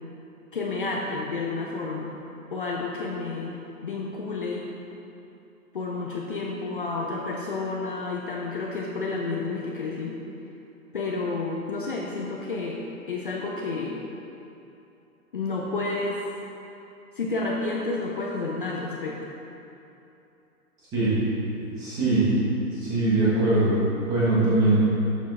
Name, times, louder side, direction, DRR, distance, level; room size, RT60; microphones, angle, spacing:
voice 1, 0.5-2.1 2.5-3.5 3.8-4.7 5.7-10.2 10.9-12.8 13.1-13.9 15.3-16.2 17.2-19.2, left 3 dB, 35° left, -2 dB, 0.7 m, -30 dB
voice 2, 21.7-22.5 22.8-24.8, right 2 dB, 10° right, -10 dB, 1.4 m, -22 dB
11.5 x 7.2 x 4.2 m, 2.8 s
hypercardioid pair, 175°, 45 cm